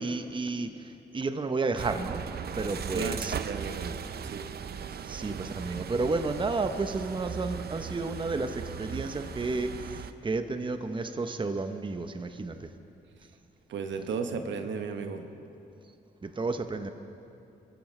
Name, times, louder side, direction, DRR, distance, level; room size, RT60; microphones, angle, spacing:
voice 1, 0.0-2.3 2.5-3.3 5.1-12.7 16.2-16.9, right 3 dB, 25° right, 8 dB, 0.8 m, -32 dB
sound 1, 1.8-10.1, right 7 dB, 55° right, 0.6 m, -38 dB
voice 2, 2.9-3.9 4.2-4.5 13.7-15.3, right 5 dB, 75° right, 6 dB, 1.1 m, -34 dB
23.5 x 14.5 x 3.3 m, 2.7 s
supercardioid pair, 60°, 19 cm